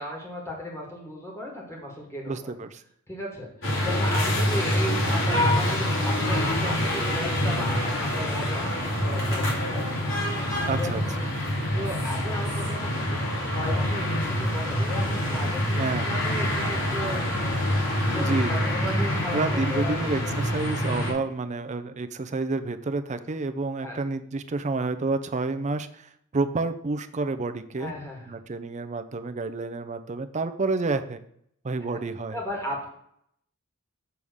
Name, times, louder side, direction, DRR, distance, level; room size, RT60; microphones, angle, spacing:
voice 1, 0.0-2.5 3.1-10.1 10.8-10.9 11.7-17.6 18.0-20.0 20.2-20.4 23.8-24.0 27.8-28.4 31.8-32.0 32.3-32.9, left 1 dB, 10° left, -2 dB, 1.9 m, -36 dB
voice 2, 2.3-2.8 10.7-11.3 15.8-16.2 18.2-18.5 19.3-27.9 28.3-31.2 31.6-32.4, right 3 dB, 35° right, 9 dB, 0.5 m, -29 dB
sound 1, 3.6-21.1, left 1 dB, 60° left, 2.5 m, -26 dB
6.9 x 3.6 x 6.2 m, 0.70 s
head